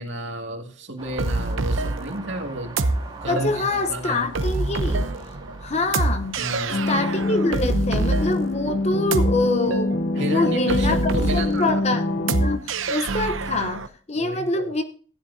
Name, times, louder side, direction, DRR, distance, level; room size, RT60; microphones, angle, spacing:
voice 1, 0.0-2.8 3.2-4.3 6.4-6.8 10.2-11.8 14.1-14.7, right 1 dB, 65° right, 2.2 m, -31 dB
sound 1, 1.0-7.6, right 2 dB, 25° right, 1.9 m, -42 dB
sound 2, 1.2-13.9, right 2 dB, 85° right, 0.8 m, -26 dB
voice 2, 3.3-5.1 5.6-6.4 6.9-14.8, left 2 dB, 35° left, 0.9 m, -26 dB
sound 3, 6.7-12.6, left 2 dB, 55° left, 0.7 m, -25 dB
15.5 x 10.0 x 2.7 m
head